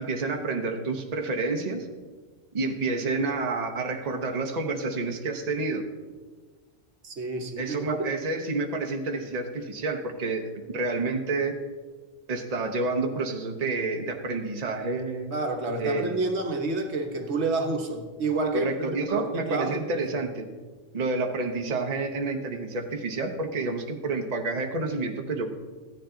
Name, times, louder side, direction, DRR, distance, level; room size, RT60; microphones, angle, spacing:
voice 1, 0.0-1.9 2.5-5.9 7.6-11.6 12.3-15.3 15.8-16.3 18.5-20.5 20.9-25.5, right 3 dB, 35° right, 3 dB, 1.0 m, -29 dB
voice 2, 7.0-8.0 15.3-20.1, right 3 dB, 65° right, 4 dB, 1.3 m, -29 dB
14.5 x 10.0 x 3.8 m, 1.4 s
omnidirectional pair, 1.3 m